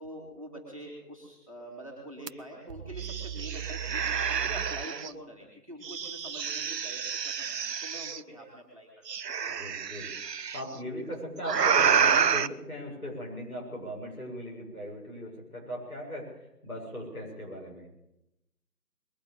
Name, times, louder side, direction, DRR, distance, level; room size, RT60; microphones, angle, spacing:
voice 1, 0.0-9.1, right 1 dB, 20° right, -2 dB, 2.7 m, -45 dB
sound 1, 2.3-2.4 2.7-5.1 5.8-8.2 9.1-10.6 11.4-12.5, right 7 dB, 85° right, 0.7 m, -29 dB
voice 2, 9.5-10.1 10.5-17.9, equal, 65° left, -2 dB, 7.1 m, -39 dB
21.5 x 9.1 x 7.2 m, 0.85 s
figure-of-eight pair, 180°, 48 cm